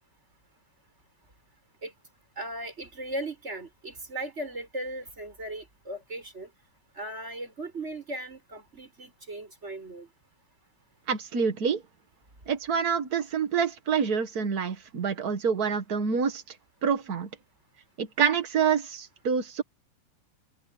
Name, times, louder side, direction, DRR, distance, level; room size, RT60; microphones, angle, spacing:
voice 1, 2.4-6.5 7.0-10.1, right 1 dB, 20° right, 6.0 m, -37 dB
voice 2, 11.1-11.8 12.5-16.6 16.8-17.3 18.0-19.6, right 6 dB, 55° right, 1.0 m, -27 dB
open air
omnidirectional pair, 3.7 m